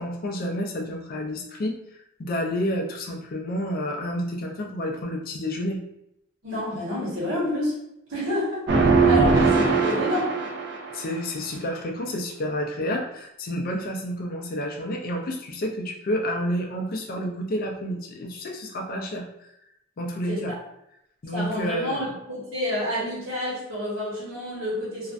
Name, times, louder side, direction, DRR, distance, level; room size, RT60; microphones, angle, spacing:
voice 1, 0.0-1.7 2.2-5.8 9.0-9.2 10.9-19.3 20.0-20.5 21.2-22.1, equal, 45° left, 2 dB, 0.4 m, -29 dB
voice 2, 6.4-7.8 8.1-10.4 20.3-20.4 21.3-25.1, left 1 dB, 75° right, -6 dB, 1.1 m, -29 dB
sound 1, 8.7-11.0, right 4 dB, 55° right, 0.4 m, -20 dB
2.4 x 2.1 x 2.4 m, 0.79 s
head